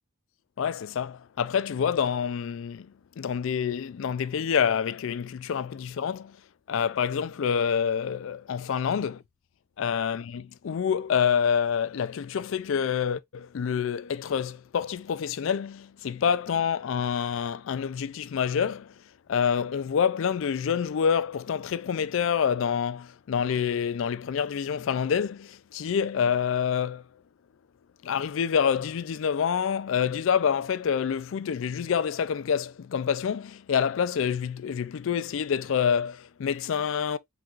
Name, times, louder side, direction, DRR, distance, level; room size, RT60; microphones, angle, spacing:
voice 1, 0.6-6.4 6.7-9.2 9.8-18.9 19.3-27.0 28.0-37.2, left 7 dB, 65° left, 0.3 m, -27 dB
4.7 x 3.9 x 2.4 m
head